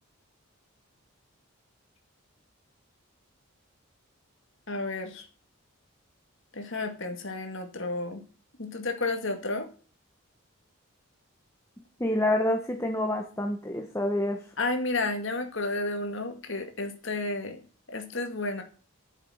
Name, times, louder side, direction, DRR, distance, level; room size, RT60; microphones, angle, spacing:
voice 1, 4.7-5.2 6.5-8.2 8.6-9.7 14.6-17.6 17.9-18.6, left 2 dB, 60° left, 5 dB, 2.1 m, -31 dB
voice 2, 12.0-14.4, left 1 dB, 10° left, 3 dB, 1.2 m, -27 dB
10.5 x 7.4 x 6.4 m, 0.38 s
head